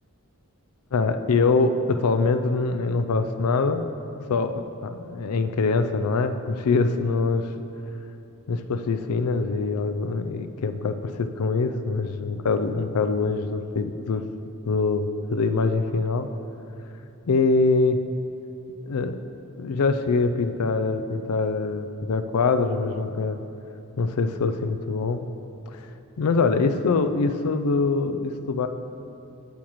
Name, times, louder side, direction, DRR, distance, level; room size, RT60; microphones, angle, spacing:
voice 1, 0.9-3.8 4.3-7.5 8.5-14.3 14.7-16.3 17.3-18.0 18.8-19.2 19.6-23.4 24.0-25.3 25.7-25.9 26.2-28.7, left 4 dB, 80° left, 9 dB, 0.4 m, -24 dB
8.7 x 8.7 x 3.1 m, 2.8 s
head